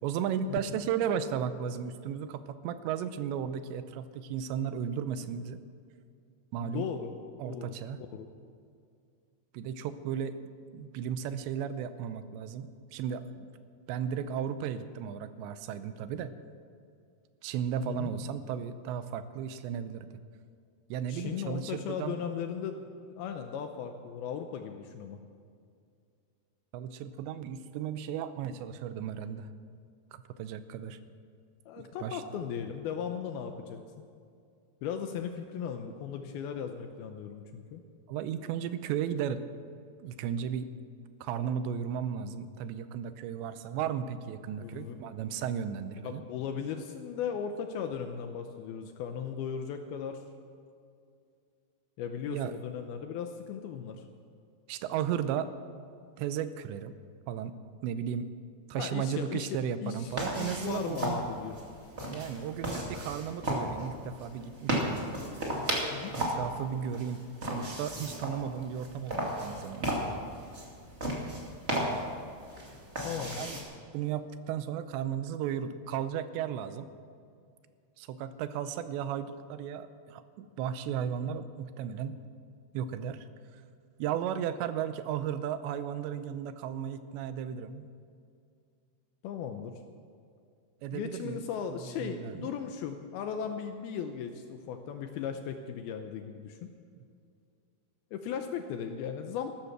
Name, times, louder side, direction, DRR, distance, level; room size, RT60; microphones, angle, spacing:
voice 1, 0.0-5.6 6.5-6.9 7.4-8.0 9.5-10.5 10.7-13.5 13.9-16.3 17.4-20.1 20.9-22.2 26.7-29.5 30.1-31.0 31.8-32.2 38.1-39.4 40.0-40.7 41.2-46.2 52.3-52.5 54.7-55.5 56.2-56.9 57.3-57.5 57.8-58.3 58.7-61.2 62.1-64.9 66.1-67.2 67.5-70.0 73.4-73.6 73.9-76.9 78.0-82.2 82.7-83.3 84.0-87.9 90.8-91.4 91.8-92.5, right 8 dB, 85° right, 12 dB, 2.9 m, -35 dB
voice 2, 6.6-7.1 7.4-8.3 17.9-18.1 21.1-25.2 31.7-34.1 34.8-37.8 44.6-45.0 46.0-50.2 52.0-54.0 58.8-61.6 65.9-66.2 73.0-73.5 89.2-89.8 90.9-96.7 98.1-99.5, left 7 dB, 80° left, 6 dB, 2.3 m, -37 dB
sound 1, 60.1-73.6, right 1 dB, 25° right, 1.5 m, -35 dB
15.0 x 13.0 x 6.0 m, 2.3 s
omnidirectional pair, 5.0 m